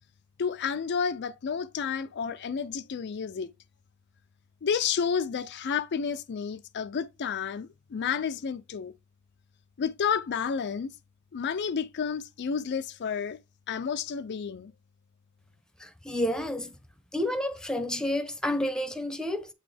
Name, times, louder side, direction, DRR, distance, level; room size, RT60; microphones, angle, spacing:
voice 1, 0.4-3.5 4.6-8.9 9.8-10.9 11.3-13.4 13.7-14.7, left 6 dB, 50° left, 0.4 m, -30 dB
voice 2, 15.8-16.7 17.1-19.5, left 1 dB, 5° left, 0.7 m, -30 dB
8.3 x 4.0 x 3.3 m
head